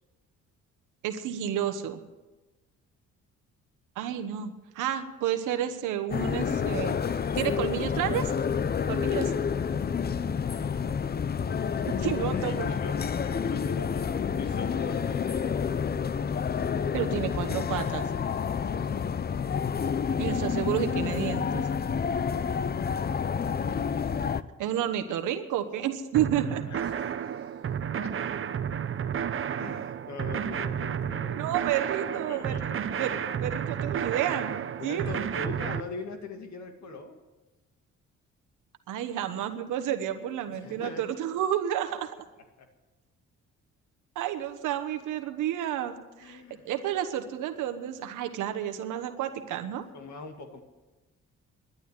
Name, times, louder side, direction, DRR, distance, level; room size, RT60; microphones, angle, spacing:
voice 1, 1.0-2.0 4.0-8.3 8.9-9.3 12.0-12.7 16.9-18.0 20.2-21.6 24.6-26.6 31.4-32.7 33.0-35.0 38.9-42.2 44.1-49.8, right 10 dB, 85° right, 8 dB, 1.2 m, -31 dB
sound 1, 6.1-24.4, left 6 dB, 30° left, 0.6 m, -29 dB
voice 2, 12.3-16.3 18.9-19.4 26.7-27.6 28.0-28.2 28.7-28.8 29.6-31.6 32.1-32.6 32.9-33.1 34.8-37.2 40.5-41.0 41.8-42.0 42.6-42.7 46.2-46.7 49.9-50.6, left 3 dB, 65° left, 5 dB, 2.2 m, -42 dB
sound 2, 26.1-35.8, right 8 dB, 45° right, 0.8 m, -31 dB
11.5 x 10.5 x 9.7 m, 1.1 s
cardioid pair, 90°, 30 cm